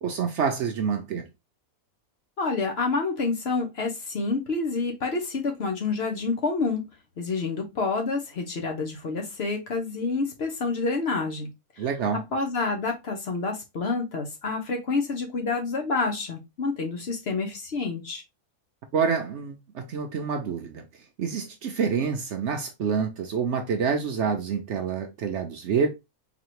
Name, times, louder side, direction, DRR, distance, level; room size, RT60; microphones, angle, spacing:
voice 1, 0.0-1.3 11.8-12.2 18.9-20.8 21.2-25.9, right 6 dB, 65° right, 0.8 m, -27 dB
voice 2, 2.4-6.8 7.2-11.5 11.8-11.9 12.3-18.2, left 4 dB, 55° left, 0.9 m, -28 dB
4.0 x 2.9 x 2.9 m
omnidirectional pair, 1.5 m